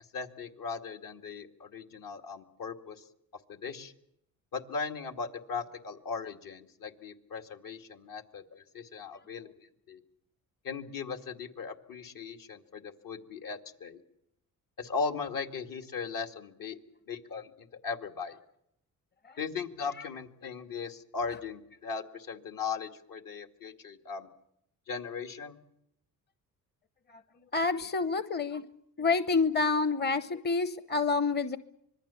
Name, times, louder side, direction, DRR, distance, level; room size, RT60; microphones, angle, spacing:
voice 1, 0.1-3.0 3.5-3.9 4.5-9.5 9.9-10.0 10.6-14.0 14.8-16.8 17.1-18.4 19.4-24.3 24.9-25.6, left 5 dB, 65° left, 5 dB, 2.4 m, -38 dB
voice 2, 27.5-28.6 29.0-31.6, left 4 dB, 30° left, 12 dB, 0.9 m, -28 dB
25.5 x 21.0 x 7.1 m, 0.78 s
cardioid pair, 75°, 36 cm